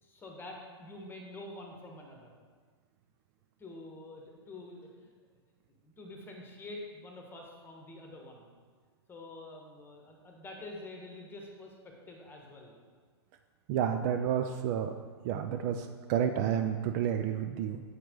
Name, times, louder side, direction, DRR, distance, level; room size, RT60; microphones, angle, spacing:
voice 1, 0.0-2.3 3.6-5.1 5.8-8.5 9.1-12.7, left 2 dB, 15° left, 0 dB, 1.2 m, -47 dB
voice 2, 13.7-14.9 15.2-17.8, right 9 dB, 40° right, 7 dB, 0.4 m, -30 dB
7.9 x 4.6 x 3.7 m, 1.6 s
hypercardioid pair, 115°, 14 cm